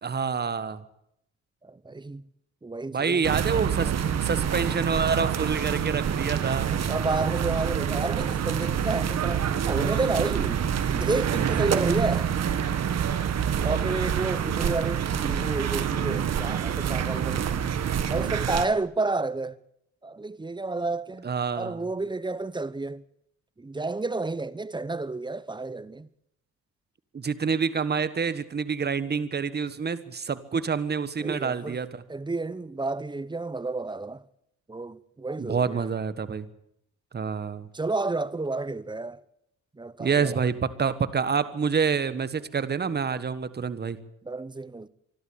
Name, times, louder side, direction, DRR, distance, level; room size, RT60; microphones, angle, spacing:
voice 1, 0.0-0.8 2.9-6.8 13.6-14.2 21.2-21.8 27.1-31.9 35.4-36.5 37.1-37.7 40.0-44.0, right 5 dB, 35° right, 1.5 m, -27 dB
voice 2, 1.6-2.2 2.6-3.4 6.6-10.6 10.9-12.3 13.6-17.7 18.1-19.6 20.0-21.3 21.5-23.0 23.6-26.1 31.2-31.8 32.1-34.2 34.7-35.9 37.7-39.2 39.8-40.4 44.2-44.9, right 3 dB, 15° right, 0.9 m, -30 dB
sound 1, 3.2-18.7, right 8 dB, 60° right, 1.9 m, -27 dB
25.0 x 12.5 x 8.7 m
cardioid pair, 90°, 30 cm